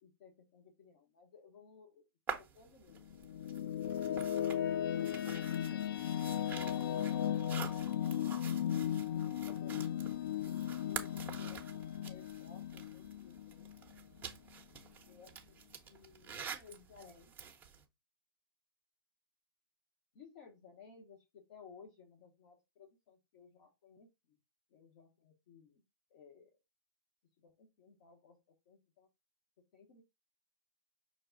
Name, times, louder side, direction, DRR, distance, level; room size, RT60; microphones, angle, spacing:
voice 1, 0.0-2.1 2.4-3.0 6.5-7.5 8.6-11.6 11.9-14.0 15.0-15.6 15.9-17.3 20.1-24.4 24.7-25.8 26.1-26.6 27.4-28.4 28.7-29.1 29.7-30.0, left 6 dB, 45° left, 1 dB, 1.1 m, -59 dB
sound 1, 2.3-17.8, right 6 dB, 15° right, 0.7 m, -48 dB
sound 2, 2.9-14.2, left 10 dB, 65° left, 0.4 m, -36 dB
5.7 x 2.3 x 3.8 m, 0.23 s
hypercardioid pair, 135°, 12 cm